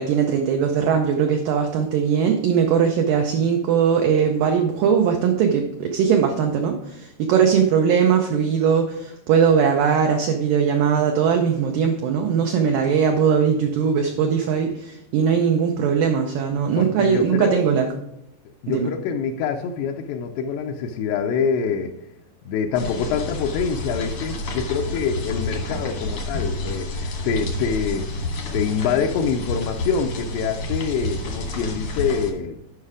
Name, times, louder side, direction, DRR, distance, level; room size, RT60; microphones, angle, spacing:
voice 1, 0.0-17.9 18.7-18.9, right 7 dB, 85° right, 3 dB, 1.9 m, -20 dB
voice 2, 16.8-17.6 18.6-22.0 22.5-28.1 28.5-32.6, left 6 dB, 85° left, 3 dB, 2.8 m, -25 dB
sound 1, 22.7-32.3, left 2 dB, 65° left, 1.3 m, -29 dB
9.9 x 5.7 x 4.9 m, 0.80 s
omnidirectional pair, 4.8 m